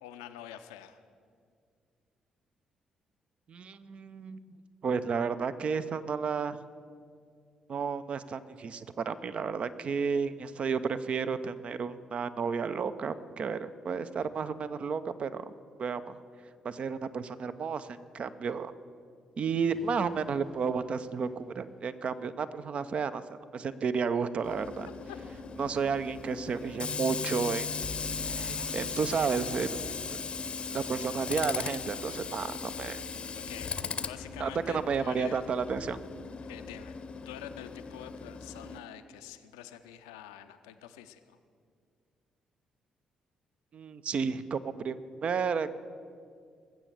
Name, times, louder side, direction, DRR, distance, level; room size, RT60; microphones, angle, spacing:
voice 1, 0.0-1.0 25.1-25.2 33.3-33.7 34.0-35.4 36.5-37.0 37.2-41.4, left 11 dB, 75° left, 9 dB, 0.6 m, -46 dB
voice 2, 3.5-4.6 4.8-6.6 7.7-15.5 15.8-16.2 16.6-18.7 19.4-24.9 25.6-27.7 28.2-30.2 30.7-33.0 34.4-36.0 43.7-45.8, right 5 dB, 45° right, 13 dB, 0.6 m, -32 dB
sound 1, 19.7-21.7 27.8-33.6, right 1 dB, ahead, 0.6 m, -50 dB
Tools, 24.4-38.8, left 5 dB, 40° left, 0.7 m, -38 dB
20.0 x 7.8 x 7.0 m, 2.2 s
figure-of-eight pair, 40°, 3 cm